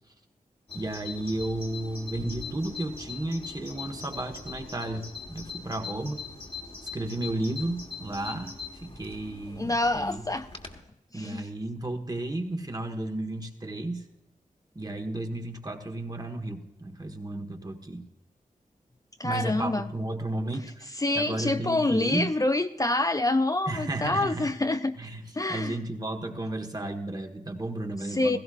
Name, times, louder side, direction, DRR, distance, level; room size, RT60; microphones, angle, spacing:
Bird vocalization bird call bird song, 0.7-10.8, left 4 dB, 40° left, 1.7 m, -41 dB
voice 1, 0.7-6.2 6.9-8.5 8.8-10.2 11.1-14.0 14.7-18.0 19.2-22.3 23.7-24.5 25.0-25.2 25.5-28.4, right 1 dB, 30° right, 5 dB, 1.6 m, -33 dB
voice 2, 9.6-10.5 11.1-11.5 19.2-19.9 21.0-25.0 25.4-25.8 28.0-28.4, left 2 dB, 25° left, 8 dB, 0.5 m, -26 dB
16.5 x 16.0 x 2.6 m, 0.90 s
wide cardioid pair, 75°, 14 cm